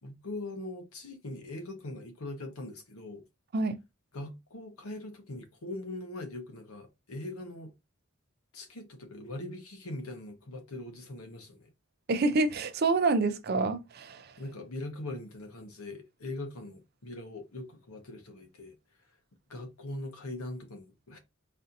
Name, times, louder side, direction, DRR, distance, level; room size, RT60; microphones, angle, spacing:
voice 1, 0.0-3.2 4.1-7.7 8.5-11.7 14.4-18.8 19.5-21.2, left 2 dB, 90° left, 0.9 m, -41 dB
voice 2, 12.1-14.3, right 3 dB, 45° right, 0.5 m, -27 dB
4.1 x 2.7 x 2.5 m
head